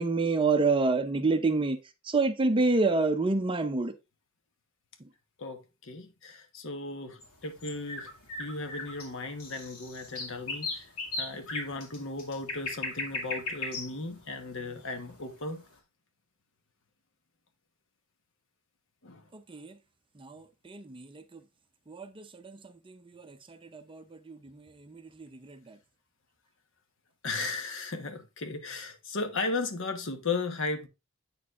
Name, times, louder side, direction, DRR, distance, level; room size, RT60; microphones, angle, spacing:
voice 1, 0.0-1.8 2.1-3.9 19.3-19.7 20.2-21.2 21.9-24.5 24.9-25.8, right 3 dB, 25° right, 0.6 m, -28 dB
voice 2, 5.4-8.1 8.4-15.6 19.0-19.3 27.2-30.9, left 3 dB, 60° left, 1.1 m, -36 dB
sound 1, 7.2-15.4, left 3 dB, 75° left, 2.2 m, -38 dB
8.5 x 6.6 x 2.5 m
head